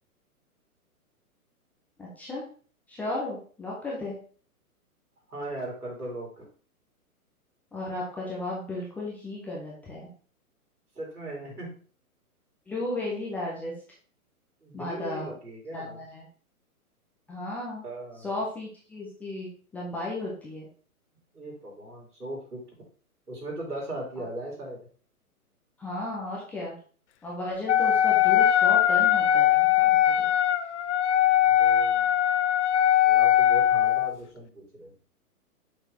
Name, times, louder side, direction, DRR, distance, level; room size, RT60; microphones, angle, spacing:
voice 1, 2.0-2.4 2.9-4.2 7.7-10.1 12.7-13.8 14.7-15.3 15.7-16.2 17.3-17.9 18.2-20.7 24.2-24.3 25.8-26.8 27.2-30.3, left 2 dB, 5° left, -4 dB, 0.5 m, -34 dB
voice 2, 5.3-6.5 11.0-11.7 14.6-16.0 17.8-18.3 21.3-22.6 23.3-24.8 31.6-32.1 33.0-34.9, right 1 dB, 85° right, -4 dB, 3.6 m, -38 dB
Wind instrument woodwind instrument, 27.7-34.1, left 11 dB, 50° left, 0.5 m, -21 dB
6.3 x 6.1 x 2.9 m, 0.42 s
figure-of-eight pair, 120°, 45 cm